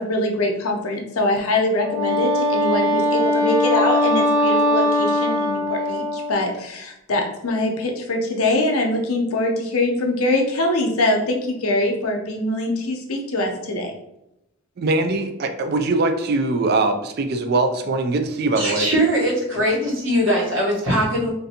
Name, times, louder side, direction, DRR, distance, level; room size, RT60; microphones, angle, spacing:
voice 1, 0.0-13.9, left 1 dB, 85° left, 2 dB, 0.6 m, -23 dB
Wind instrument woodwind instrument, 1.8-6.5, left 1 dB, 80° right, 0.9 m, -20 dB
voice 2, 14.8-18.9, right 2 dB, 45° right, 7 dB, 0.3 m, -22 dB
voice 3, 18.6-21.3, equal, 60° right, -4 dB, 1.2 m, -21 dB
3.3 x 2.6 x 2.7 m, 0.86 s
head